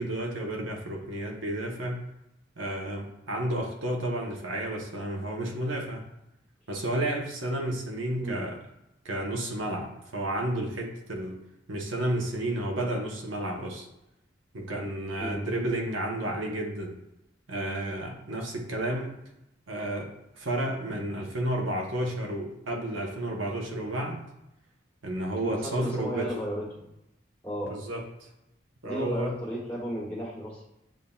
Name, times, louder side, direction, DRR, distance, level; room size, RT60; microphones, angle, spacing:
voice 1, 0.0-2.0 2.6-6.0 6.7-8.6 9.0-11.4 11.7-13.9 14.5-17.0 17.5-19.1 19.7-24.3 25.0-26.3 27.6-28.3 28.8-29.3, right 1 dB, 85° right, 1 dB, 0.8 m, -31 dB
voice 2, 25.4-26.9 27.4-27.7 28.8-30.6, equal, 5° left, -6 dB, 1.3 m, -34 dB
7.1 x 2.6 x 2.3 m, 0.87 s
head